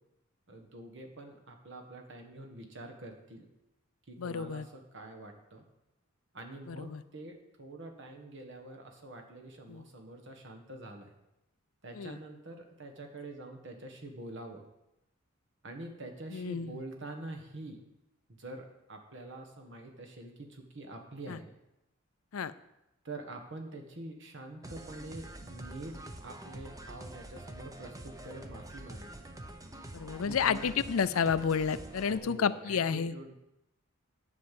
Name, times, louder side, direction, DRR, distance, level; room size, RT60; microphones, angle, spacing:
voice 1, 0.5-3.4 4.1-5.6 6.3-11.1 11.8-14.6 15.6-17.8 18.4-21.5 23.0-29.3 30.3-30.7 32.0-33.3, right 2 dB, 60° right, 3 dB, 1.6 m, -46 dB
voice 2, 4.2-4.7 6.7-7.0 9.7-9.8 11.9-12.2 16.3-16.8 21.3-21.4 22.3-22.5 29.9-33.1, left 6 dB, 90° left, 15 dB, 0.5 m, -31 dB
sound 1, 24.6-32.2, right 1 dB, 15° right, 0.8 m, -46 dB
10.5 x 5.6 x 7.6 m, 0.91 s
head